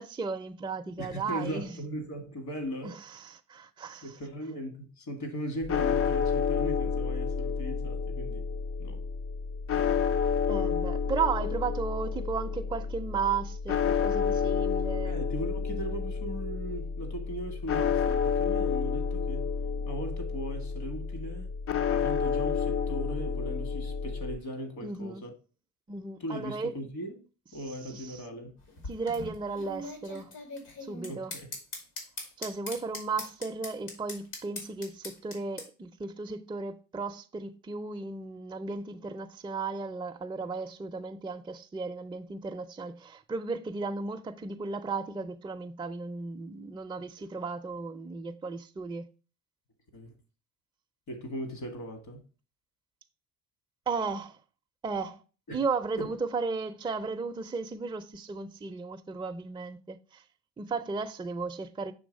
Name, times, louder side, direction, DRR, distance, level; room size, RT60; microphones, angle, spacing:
voice 1, 0.0-1.7 2.8-4.1 10.5-15.1 24.8-25.2 25.9-26.7 27.9-28.2 28.9-30.4 30.8-31.3 32.4-49.1 53.9-54.4 54.8-55.2 55.5-60.2 60.6-61.9, right 4 dB, 15° right, 0.4 m, -35 dB
voice 2, 1.0-3.0 4.0-8.5 8.8-9.0 15.0-19.5 19.9-21.5 21.9-25.3 26.2-27.2 27.5-28.6 31.1-31.5 47.2-47.3 49.9-50.2 51.1-52.2 55.5-55.6 56.0-56.1, equal, 65° left, 1.8 m, -38 dB
sound 1, 5.6-24.4, left 6 dB, 50° left, 0.4 m, -30 dB
sound 2, 28.6-35.7, left 2 dB, 85° left, 2.2 m, -41 dB
6.3 x 3.2 x 5.1 m
cardioid pair, 90°, 30 cm